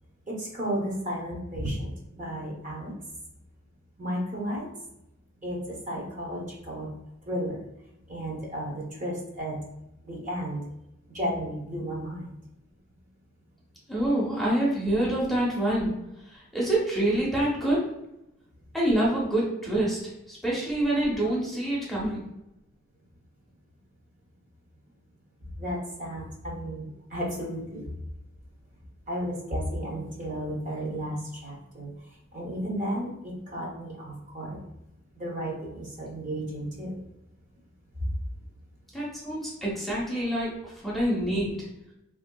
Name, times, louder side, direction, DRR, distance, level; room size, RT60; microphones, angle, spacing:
voice 1, 0.3-2.9 4.0-4.7 5.4-6.9 7.3-7.6 8.1-9.6 10.0-10.6 11.1-12.3 25.6-27.9 29.1-31.9 32.3-34.6 35.2-36.9, equal, 40° right, -3 dB, 0.7 m, -33 dB
voice 2, 13.9-15.9 16.3-17.9 18.7-20.0 20.3-22.2 38.9-41.6, right 1 dB, ahead, -5 dB, 0.6 m, -26 dB
3.3 x 2.6 x 2.2 m, 0.88 s
head